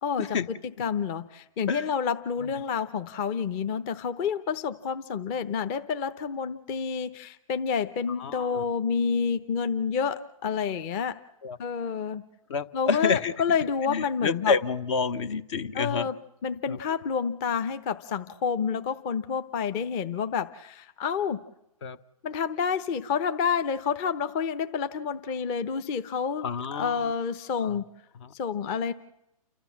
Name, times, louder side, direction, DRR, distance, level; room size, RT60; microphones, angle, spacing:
voice 1, 0.0-11.2 11.6-12.2 12.7-14.5 15.7-16.2 16.4-21.4 22.2-26.5 26.7-27.8 28.3-28.9, left 6 dB, 30° left, 10 dB, 0.9 m, -29 dB
voice 2, 8.2-8.6 11.4-11.6 12.5-13.3 13.9-16.1 16.7-16.8 21.8-22.0 26.4-27.1 27.6-27.7 28.2-28.3, left 5 dB, 50° left, 13 dB, 1.1 m, -29 dB
29.5 x 13.0 x 7.3 m, 0.83 s
hypercardioid pair, 140°, 19 cm